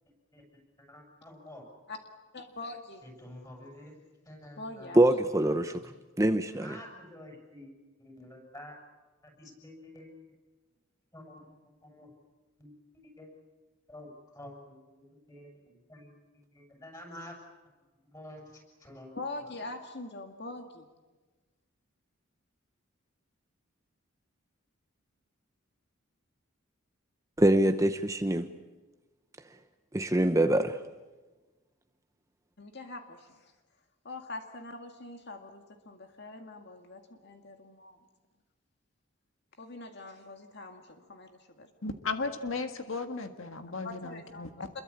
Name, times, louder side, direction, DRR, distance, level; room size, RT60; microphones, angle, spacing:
voice 1, 0.3-1.7 3.0-5.8 6.2-7.7 8.0-8.8 9.2-10.1 11.1-12.1 12.6-13.3 13.9-17.4 18.0-19.1 19.4-19.5, left 1 dB, 15° left, 2 dB, 7.8 m, -50 dB
voice 2, 2.3-3.0 4.6-5.0 19.2-20.9 32.6-33.5 34.0-38.0 39.6-41.7 43.8-44.8, left 2 dB, 55° left, 5 dB, 2.0 m, -43 dB
voice 3, 5.0-5.7 6.2-6.7 27.4-28.5 29.9-30.8, right 1 dB, 15° right, 8 dB, 0.8 m, -24 dB
voice 4, 41.8-44.8, left 3 dB, 75° left, 7 dB, 1.6 m, -36 dB
28.0 x 22.5 x 8.7 m, 1.2 s
head